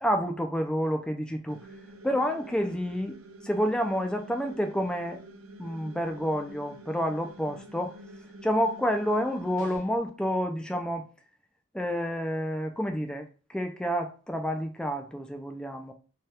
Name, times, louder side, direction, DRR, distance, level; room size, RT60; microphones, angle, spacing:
voice 1, 0.0-1.6 2.0-3.2 3.4-5.2 5.6-8.0 8.4-11.1 11.7-15.9, equal, 5° left, 5 dB, 0.3 m, -29 dB
sound 1, 1.5-9.7, right 1 dB, 80° right, 0.6 m, -48 dB
sound 2, 9.6-10.1, left 2 dB, 90° left, 0.9 m, -47 dB
2.8 x 2.3 x 3.2 m, 0.35 s
head